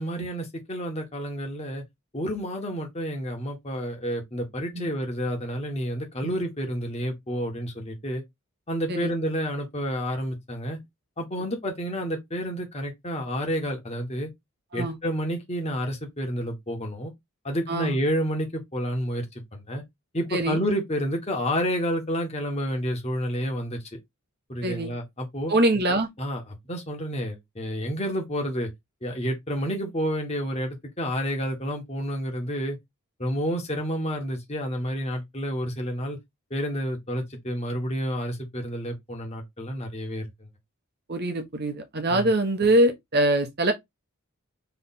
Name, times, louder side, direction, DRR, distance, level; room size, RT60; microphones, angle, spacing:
voice 1, 0.0-1.8 2.1-8.2 8.7-10.8 11.2-14.3 14.7-17.1 17.4-19.2 19.5-19.8 20.1-23.8 24.5-25.5 26.2-28.7 29.0-32.8 33.2-36.2 36.5-40.2 42.1-42.3, equal, 30° left, 1.5 m, -29 dB
voice 2, 24.6-24.9 25.5-26.1 41.1-43.7, right 1 dB, 45° right, 1.2 m, -23 dB
3.4 x 3.3 x 4.2 m
head